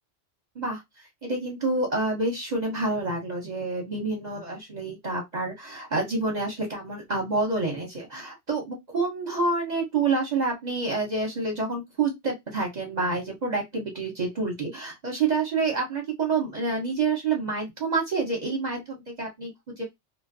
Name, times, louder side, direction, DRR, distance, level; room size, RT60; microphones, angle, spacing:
voice 1, 1.2-19.8, right 3 dB, 40° right, 0 dB, 0.8 m, -28 dB
2.4 x 2.3 x 2.6 m, 0.17 s
omnidirectional pair, 1.2 m